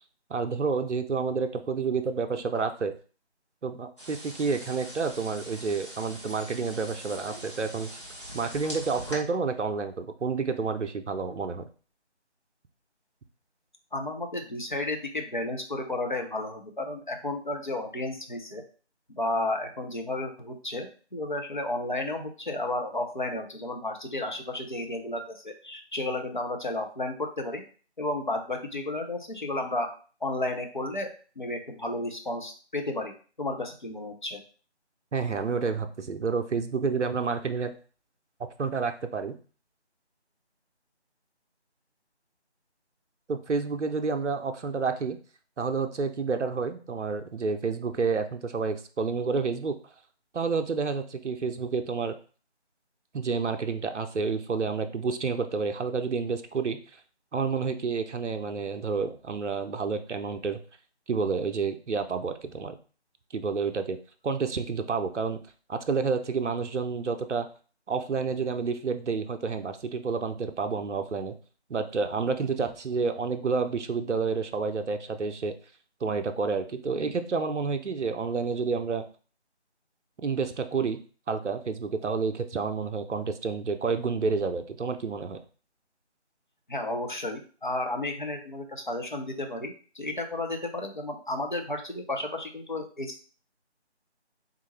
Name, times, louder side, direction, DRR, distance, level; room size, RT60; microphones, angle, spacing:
voice 1, 0.3-2.9 3.6-7.9 8.3-11.6 35.1-37.7 38.6-39.4 43.3-45.2 45.6-49.8 50.3-52.1 53.1-56.8 57.3-60.6 61.1-62.8 63.3-64.0 64.2-65.4 65.7-67.5 67.9-71.3 71.7-75.5 76.0-79.1 80.2-81.0 81.3-85.4, right 5 dB, 85° right, 7 dB, 0.6 m, -29 dB
sound 1, 4.0-9.1, equal, 25° left, 0.8 m, -42 dB
voice 2, 13.9-18.6 19.2-27.6 28.0-29.9 30.2-31.1 31.4-34.4 86.7-93.2, left 2 dB, 45° left, 3 dB, 0.6 m, -32 dB
3.6 x 2.4 x 3.1 m, 0.39 s
figure-of-eight pair, 170°, 34 cm